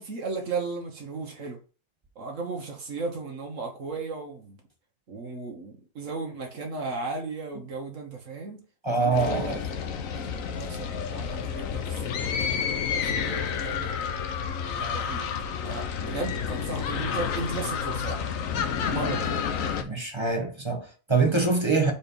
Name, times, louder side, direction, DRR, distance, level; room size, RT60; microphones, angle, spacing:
voice 1, 0.0-1.6 2.2-4.6 5.1-8.6 9.0-9.6 10.1-12.3 12.9-14.1 14.7-15.2 15.6-18.3 18.9-19.3, right 4 dB, 70° right, 1.5 m, -35 dB
voice 2, 8.8-9.6 19.8-21.9, right 3 dB, 20° right, 1.1 m, -24 dB
sound 1, 9.1-19.8, left 7 dB, 80° left, 1.2 m, -30 dB
4.3 x 4.3 x 5.3 m
omnidirectional pair, 1.4 m